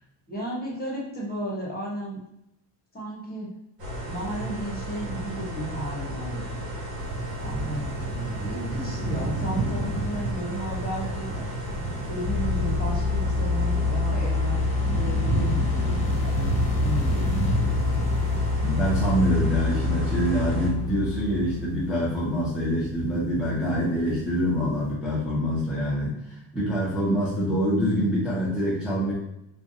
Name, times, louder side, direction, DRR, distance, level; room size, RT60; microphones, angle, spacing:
voice 1, 0.3-2.2 2.9-3.5 4.1-6.6 7.4-11.6 12.1-14.6 15.0-17.2, right 1 dB, 20° left, -4 dB, 1.0 m, -34 dB
sound 1, 3.8-20.7, equal, 65° right, 1.3 m, -34 dB
sound 2, 7.0-24.9, right 2 dB, 45° right, 0.8 m, -32 dB
sound 3, 12.3-22.1, left 4 dB, 60° left, 0.5 m, -27 dB
voice 2, 18.6-29.1, equal, ahead, -8 dB, 0.7 m, -25 dB
2.6 x 2.3 x 2.6 m, 0.85 s
cardioid pair, 95°, 48 cm